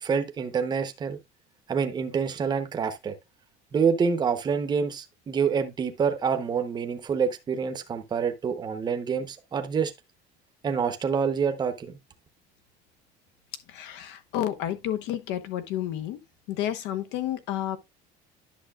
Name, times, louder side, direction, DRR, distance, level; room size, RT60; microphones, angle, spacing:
voice 1, 0.0-1.2 1.7-3.1 3.7-9.9 10.6-12.0, right 6 dB, 20° right, 0.9 m, -27 dB
voice 2, 13.7-16.2 16.5-17.8, left 11 dB, 70° left, 1.1 m, -30 dB
10.5 x 6.5 x 2.4 m
cardioid pair, 155°, 19 cm